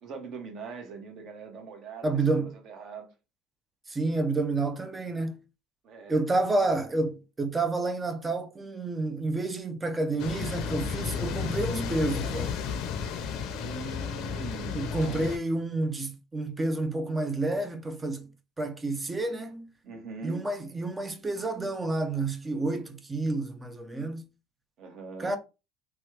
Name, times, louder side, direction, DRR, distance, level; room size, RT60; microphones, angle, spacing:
voice 1, 0.0-2.1 2.6-3.1 5.8-6.2 13.6-15.3 19.8-20.5 24.8-25.4, right 4 dB, 45° right, 1.1 m, -42 dB
voice 2, 2.0-2.6 3.9-5.4 6.1-12.5 14.7-18.3 18.6-19.7 20.2-24.2 25.2-25.4, right 2 dB, 15° right, 0.5 m, -29 dB
sound 1, 10.2-15.4, left 6 dB, 60° left, 0.7 m, -33 dB
3.0 x 2.3 x 3.2 m
supercardioid pair, 125°, 0 cm